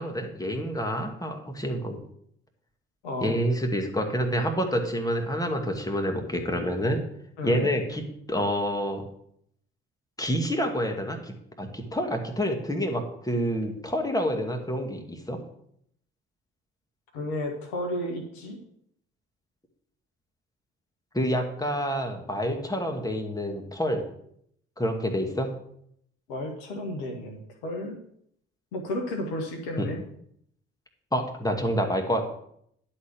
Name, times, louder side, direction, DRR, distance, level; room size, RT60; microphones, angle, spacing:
voice 1, 0.0-2.0 3.2-7.0 7.4-9.0 10.2-15.4 21.1-24.0 24.8-25.5 29.8-29.9 31.1-32.2, equal, 10° left, 3 dB, 2.2 m, -28 dB
voice 2, 3.0-3.3 7.4-7.6 17.1-18.6 26.3-28.0 28.7-30.0, left 1 dB, 75° left, 3 dB, 1.5 m, -32 dB
11.0 x 4.3 x 6.9 m, 0.70 s
hypercardioid pair, 45°, 31 cm